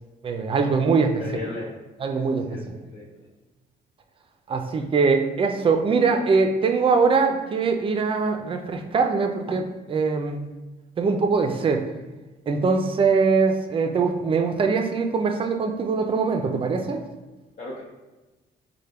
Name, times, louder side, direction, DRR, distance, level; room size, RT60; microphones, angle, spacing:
voice 1, 0.2-1.2 2.0-2.4 4.5-10.4 11.0-11.8 12.5-17.0, right 4 dB, 30° right, 5 dB, 0.4 m, -22 dB
voice 2, 0.8-1.8 2.1-2.2 2.5-3.3 17.6-17.8, left 3 dB, 55° left, -6 dB, 0.7 m, -37 dB
4.2 x 2.1 x 3.4 m, 1.2 s
cardioid pair, 135°, 18 cm